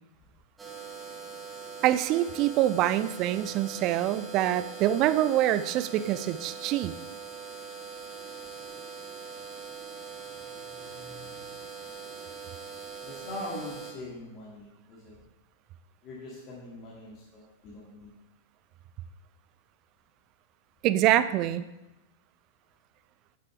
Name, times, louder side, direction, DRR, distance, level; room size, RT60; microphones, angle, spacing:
sound 1, 0.6-13.9, right 5 dB, 15° right, 1.4 m, -42 dB
voice 1, 1.8-6.9 20.8-21.6, right 13 dB, 40° right, 13 dB, 0.4 m, -25 dB
voice 2, 10.6-11.5 13.0-15.2 16.0-18.1, left 1 dB, 35° left, -6 dB, 2.1 m, -43 dB
8.4 x 7.7 x 3.3 m, 0.98 s
figure-of-eight pair, 95°, 0 cm